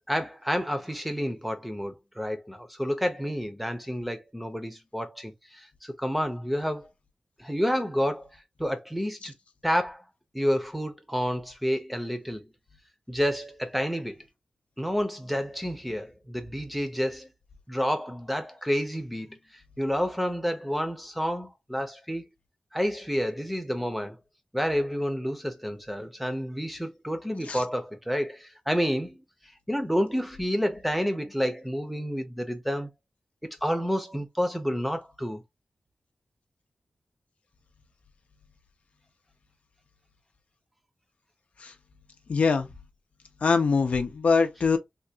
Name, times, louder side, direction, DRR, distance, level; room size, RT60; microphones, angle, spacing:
voice 1, 0.1-6.9 7.4-8.3 8.6-9.3 9.6-10.0 10.3-12.4 13.1-14.2 14.8-17.3 17.7-19.4 19.8-22.2 22.7-24.2 24.5-29.2 29.7-32.9 33.4-35.4, equal, 5° right, 0.7 m, -29 dB
voice 2, 42.3-42.7 43.4-44.8, left 4 dB, 70° left, 0.6 m, -23 dB
3.4 x 2.3 x 2.7 m
wide cardioid pair, 120°, 2 cm